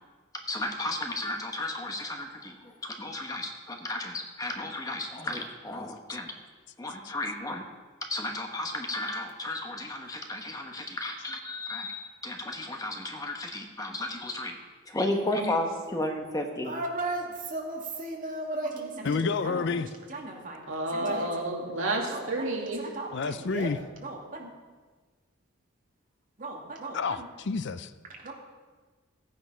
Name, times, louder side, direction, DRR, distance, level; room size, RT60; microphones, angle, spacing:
voice 1, 0.3-6.3 6.8-7.6 8.0-14.6 14.9-16.7, left 1 dB, 15° left, 3 dB, 1.1 m, -33 dB
voice 2, 16.6-20.6 20.9-21.3 22.1-22.3 22.8-23.7 24.0-24.5 26.4-27.3 28.2-28.3, right 2 dB, 40° right, -1 dB, 2.5 m, -36 dB
voice 3, 19.0-19.9 23.1-23.8 26.9-27.9, left 4 dB, 55° left, 13 dB, 0.5 m, -29 dB
voice 4, 20.7-22.8, right 2 dB, 65° right, 0 dB, 2.4 m, -31 dB
14.5 x 9.3 x 5.7 m, 1.4 s
head